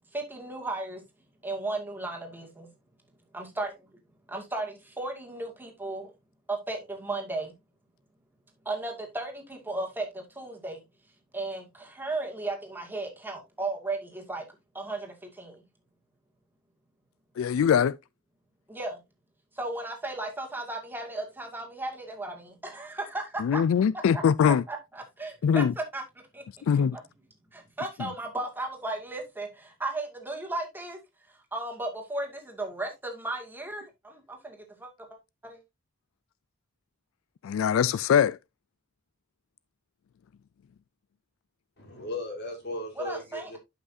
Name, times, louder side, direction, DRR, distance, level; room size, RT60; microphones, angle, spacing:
voice 1, 0.1-1.0 1.4-2.7 3.3-3.7 4.3-6.1 6.5-7.5 8.7-10.8 11.3-14.5 14.7-15.6 18.7-19.0 19.6-23.6 23.9-26.0 26.3-26.4 26.9-27.0 27.5-31.0 31.3-34.9 35.4-35.6 43.0-43.6, right 2 dB, 10° right, 2.1 m, -35 dB
voice 2, 17.4-17.9 23.4-24.6 25.4-25.7 26.7-27.0 37.4-38.4, left 7 dB, 85° left, 0.3 m, -22 dB
voice 3, 41.8-43.6, left 2 dB, 55° left, 3.5 m, -36 dB
11.0 x 5.7 x 2.7 m
head